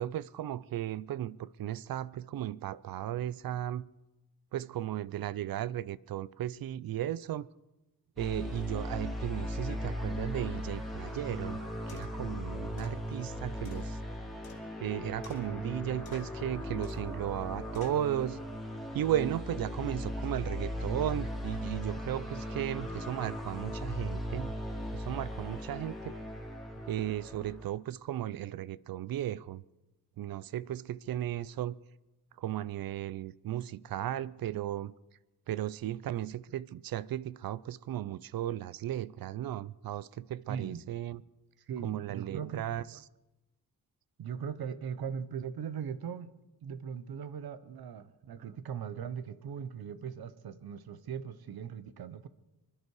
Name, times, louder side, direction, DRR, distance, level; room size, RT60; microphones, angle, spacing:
voice 1, 0.0-3.9 4.5-7.5 8.2-11.6 11.9-14.0 14.8-18.4 18.9-24.6 24.9-26.0 26.9-29.6 30.2-31.8 32.4-34.9 35.5-41.2 41.8-42.8, right 12 dB, 70° right, 0.5 m, -35 dB
sound 1, 8.2-27.7, left 1 dB, ahead, 2.5 m, -38 dB
sound 2, 11.9-12.3 12.8-13.0 13.7-14.9 15.2-15.8 16.1-16.5 16.8-17.2 17.7-18.1, left 6 dB, 85° left, 2.4 m, -54 dB
voice 2, 40.5-40.8 41.7-42.6 44.2-46.3 46.6-52.3, right 7 dB, 85° right, 0.9 m, -39 dB
25.5 x 11.0 x 4.8 m
wide cardioid pair, 125°, 36 cm